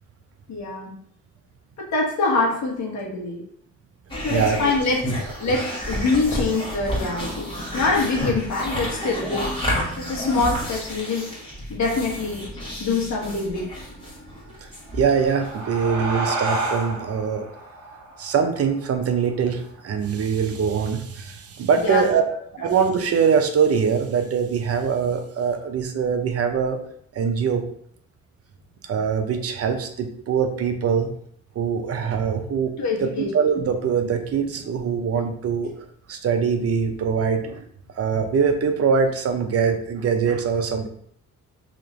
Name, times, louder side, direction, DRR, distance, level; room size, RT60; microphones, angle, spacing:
voice 1, 0.5-0.9 1.8-3.4 4.2-5.0 5.4-9.5 10.0-11.3 11.7-12.4 12.8-13.7 21.7-22.1 32.8-33.3, left 3 dB, 65° left, -3 dB, 1.4 m, -24 dB
sound 1, 4.1-15.8, equal, 15° left, 1.4 m, -30 dB
voice 2, 4.3-4.7 5.4-5.5 14.9-17.4 18.2-22.2 22.6-26.8 27.1-27.6 28.8-31.1 31.5-32.7 33.0-33.1 33.3-35.7 36.1-37.6 38.0-40.9, right 6 dB, 50° right, 5 dB, 0.6 m, -23 dB
sound 2, 14.9-20.0, right 2 dB, 80° right, 1.0 m, -31 dB
3.2 x 2.9 x 3.7 m, 0.66 s
cardioid pair, 90°, 30 cm